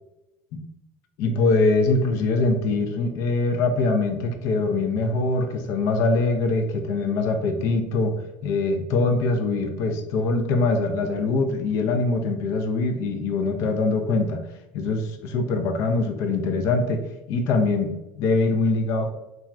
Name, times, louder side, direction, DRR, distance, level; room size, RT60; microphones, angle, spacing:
voice 1, 1.2-8.2 8.4-14.4 14.7-19.1, left 3 dB, 65° left, 5 dB, 0.5 m, -23 dB
3.0 x 2.4 x 2.4 m, 0.97 s
supercardioid pair, 110°, 5 cm